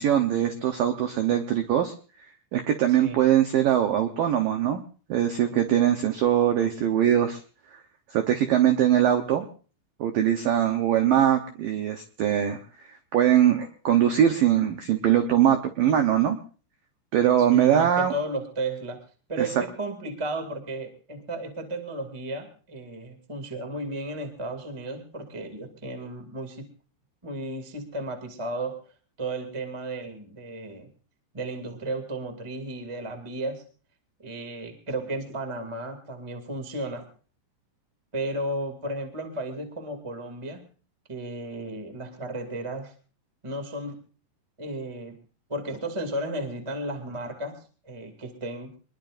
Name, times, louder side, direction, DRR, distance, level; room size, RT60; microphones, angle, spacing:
voice 1, 0.0-1.9 2.5-4.8 5.1-7.4 7.7-7.8 8.1-9.5 10.0-12.6 13.1-16.4 17.1-18.1 19.4-19.5, right 10 dB, 85° right, 6 dB, 1.9 m, -22 dB
voice 2, 17.5-19.0 19.3-26.7 27.2-28.8 29.2-30.9 31.3-33.6 34.2-37.1 38.1-40.6 41.1-42.9 43.4-44.0 44.6-45.2 45.5-47.6 47.8-48.7, right 1 dB, 25° right, 5 dB, 0.6 m, -34 dB
25.5 x 21.5 x 2.6 m, 0.38 s
omnidirectional pair, 5.6 m